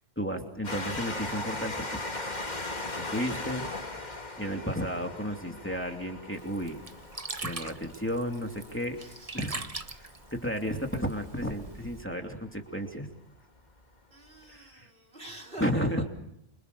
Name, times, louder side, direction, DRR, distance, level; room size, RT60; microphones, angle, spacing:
voice 1, 0.2-2.1 2.9-6.8 7.4-9.0 9.3-9.6 9.9-13.1 14.5-14.9 15.6-16.0, equal, 10° left, 3 dB, 2.7 m, -33 dB
Train, 0.6-11.8 12.5-12.6 12.9-13.0, left 2 dB, 45° left, 2.4 m, -39 dB
Sink (filling or washing), 6.3-12.0, right 3 dB, 35° right, 1.4 m, -42 dB
voice 2, 8.9-9.3 14.1-16.0, right 2 dB, 60° right, 0 dB, 5.2 m, -46 dB
27.0 x 26.0 x 6.8 m, 0.78 s
omnidirectional pair, 1.1 m